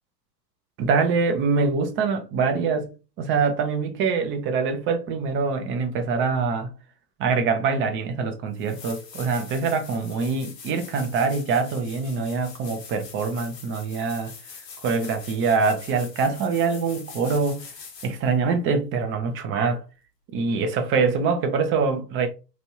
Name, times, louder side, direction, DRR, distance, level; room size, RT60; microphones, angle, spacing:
voice 1, 0.8-6.7 7.2-14.3 14.8-17.7 18.0-19.8 20.3-22.3, right 5 dB, 25° right, 0.6 m, -24 dB
sound 1, 8.1-8.2 8.5-18.3 21.1-21.2, left 6 dB, 75° left, 1.2 m, -43 dB
3.1 x 2.5 x 2.9 m
hypercardioid pair, 100°, 50 cm